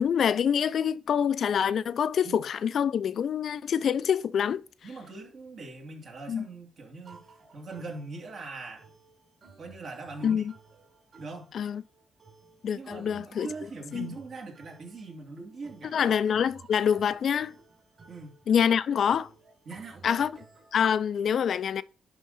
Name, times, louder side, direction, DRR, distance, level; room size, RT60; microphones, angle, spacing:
voice 1, 0.0-4.6 6.3-6.4 10.2-10.5 11.5-11.8 12.6-13.5 13.9-14.1 15.9-17.5 18.5-19.3 20.0-20.3 20.7-21.8, left 8 dB, 65° left, 0.4 m, -26 dB
voice 2, 4.8-7.3 7.5-8.8 9.6-10.5 11.2-11.5 12.7-16.0 18.1-18.4 19.7-20.3, right 3 dB, 60° right, 2.7 m, -41 dB
sound 1, 7.0-20.8, right 4 dB, 35° right, 3.4 m, -56 dB
11.0 x 3.7 x 4.1 m
cardioid pair, 115°, 0 cm